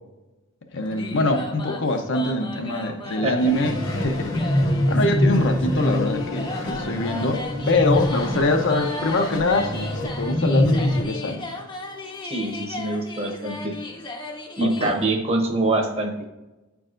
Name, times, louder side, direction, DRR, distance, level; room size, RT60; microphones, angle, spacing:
voice 1, 0.7-4.3 4.9-11.4 14.6-14.9, left 2 dB, 65° left, 5 dB, 0.7 m, -24 dB
sound 1, 0.8-15.1, left 2 dB, 25° left, 0.7 m, -36 dB
sound 2, 3.4-11.0, equal, 80° left, 1.1 m, -24 dB
voice 2, 12.2-13.8 14.6-16.3, right 2 dB, 30° right, 2 dB, 0.9 m, -25 dB
8.7 x 4.7 x 2.5 m, 1.0 s
head